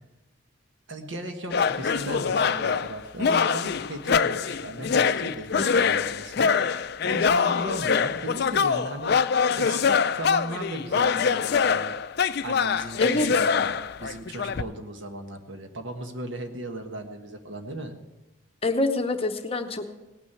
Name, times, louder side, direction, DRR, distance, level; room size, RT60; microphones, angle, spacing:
voice 1, 0.9-12.0 12.4-17.9, right 1 dB, 60° right, 5 dB, 1.5 m, -37 dB
sound 1, 1.5-14.6, left 6 dB, 50° left, 0.4 m, -24 dB
voice 2, 5.6-5.9 13.0-13.3 18.6-19.9, left 2 dB, 25° left, 6 dB, 0.8 m, -26 dB
18.0 x 6.2 x 8.4 m, 1.1 s
head